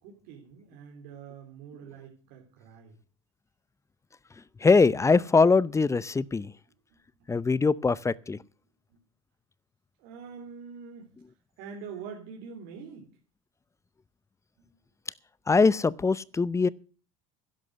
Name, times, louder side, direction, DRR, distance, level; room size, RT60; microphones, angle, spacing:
voice 1, 0.0-2.9 7.2-7.3 8.9-9.0 10.0-11.1 11.6-13.1 14.6-14.7, right 6 dB, 70° right, 3.4 m, -44 dB
voice 2, 4.6-6.5 7.3-8.4 15.5-16.7, left 4 dB, 15° left, 0.7 m, -22 dB
11.5 x 11.5 x 6.3 m
hypercardioid pair, 85°, 17 cm